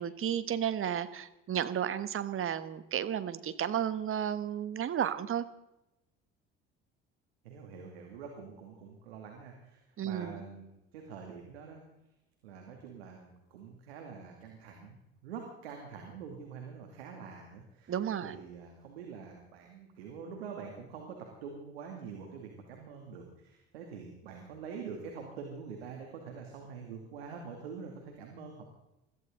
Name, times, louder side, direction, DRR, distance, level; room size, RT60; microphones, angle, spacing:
voice 1, 0.0-5.4 10.0-10.4 17.9-18.3, right 9 dB, 45° right, 13 dB, 1.4 m, -33 dB
voice 2, 7.4-11.8 12.4-17.9 18.2-28.6, right 6 dB, 85° right, 2 dB, 2.5 m, -45 dB
22.0 x 15.0 x 3.8 m, 0.91 s
hypercardioid pair, 65°, 30 cm